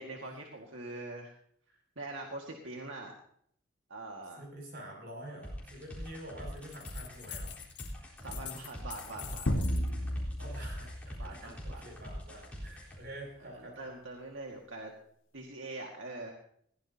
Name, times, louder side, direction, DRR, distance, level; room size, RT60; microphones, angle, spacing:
voice 1, 0.0-1.3 2.0-3.1 3.9-4.4 8.2-9.5 11.2-11.8 13.4-14.9 15.3-16.4, right 2 dB, 80° right, 1 dB, 1.9 m, -43 dB
voice 2, 4.4-7.5 8.2-8.6 9.1-9.4 9.7-9.8 10.4-13.8, right 1 dB, 55° right, 1 dB, 6.8 m, -47 dB
sound 1, 5.4-13.0, equal, 5° left, 3.9 m, -44 dB
bullet cases, 6.6-7.9 8.2-9.9, left 12 dB, 60° left, 1.7 m, -46 dB
sound 2, 9.5-12.0, equal, 85° left, 1.4 m, -33 dB
21.0 x 16.5 x 2.8 m, 0.66 s
head